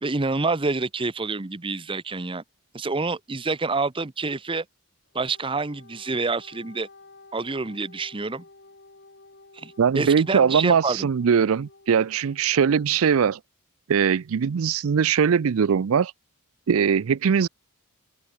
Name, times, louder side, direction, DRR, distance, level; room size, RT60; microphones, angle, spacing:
voice 1, 0.0-2.4 2.7-4.6 5.1-6.9 7.3-8.4 9.5-11.1, right 3 dB, 25° right, 0.8 m, -27 dB
Wind instrument woodwind instrument, 5.1-13.1, left 3 dB, 50° left, 7.1 m, -52 dB
voice 2, 9.8-13.4 13.9-16.1 16.7-17.5, right 7 dB, 65° right, 0.4 m, -21 dB
open air
head